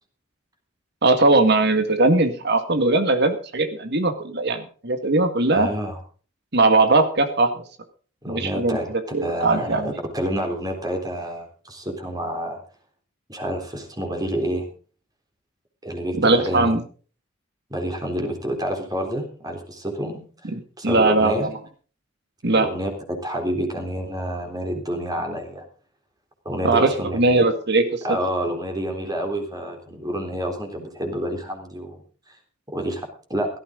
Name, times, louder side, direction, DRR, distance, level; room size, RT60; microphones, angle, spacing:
voice 1, 1.0-5.7 6.5-7.6 8.3-8.8 9.1-9.9 16.1-16.8 20.5-21.5 22.4-22.7 26.6-27.8, right 2 dB, 60° right, 8 dB, 2.0 m, -19 dB
voice 2, 5.5-6.0 8.2-8.9 9.2-12.6 13.3-14.7 15.8-16.8 17.7-20.5 20.8-21.5 22.6-25.6 26.5-27.5 28.0-32.0 32.7-33.5, equal, 20° right, 3 dB, 3.7 m, -28 dB
17.0 x 13.5 x 3.9 m, 0.40 s
head